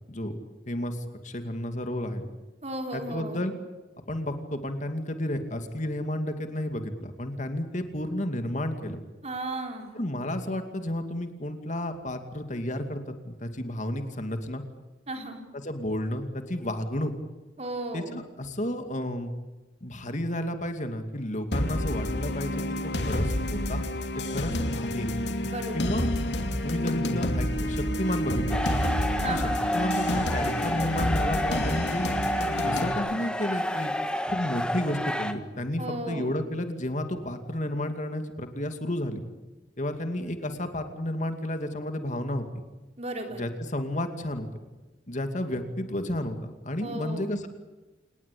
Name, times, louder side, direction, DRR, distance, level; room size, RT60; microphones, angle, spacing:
voice 1, 0.1-0.4 0.7-2.2 2.9-3.5 4.1-9.0 9.9-14.6 15.5-17.1 17.9-19.3 19.8-23.8 24.3-25.1 25.7-26.3 26.6-28.8 29.3-32.1 32.6-33.9 34.3-39.2 39.8-42.5 43.3-44.5 45.1-46.4 46.6-47.5, left 1 dB, 40° left, 7 dB, 2.5 m, -32 dB
voice 2, 2.6-3.5 9.2-9.9 15.1-15.4 17.6-18.2 25.4-26.1 29.2-29.6 35.8-36.4 43.0-43.4 46.8-47.3, right 2 dB, 35° right, 3 dB, 4.3 m, -35 dB
sound 1, 21.5-32.9, left 1 dB, 65° left, 2.8 m, -29 dB
sound 2, 28.5-35.3, equal, 5° left, 1.6 m, -30 dB
28.0 x 20.0 x 8.6 m, 1.1 s
head